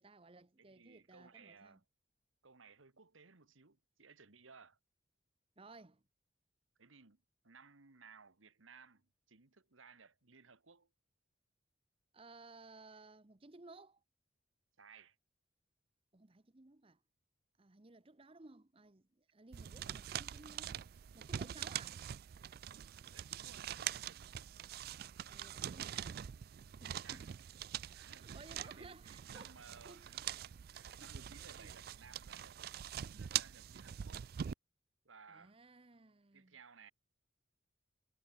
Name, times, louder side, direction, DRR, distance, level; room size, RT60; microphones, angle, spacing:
voice 1, 0.0-1.8 5.6-6.0 12.1-14.0 16.1-17.0 17.6-20.8 21.1-22.1 25.3-26.3 26.7-27.3 28.1-30.4 31.0-31.3 31.6-31.7 35.3-36.6, right 3 dB, 30° right, 0.9 m, -58 dB
voice 2, 0.6-1.8 2.4-4.8 6.8-10.9 14.8-15.2 23.1-24.5 26.8-27.3 27.9-29.0 29.3-30.3 30.7-32.6 33.0-34.2 35.1-35.6 36.3-36.9, right 5 dB, 90° right, 1.7 m, -60 dB
sound 1, 19.5-34.5, right 10 dB, 50° right, 0.3 m, -44 dB
head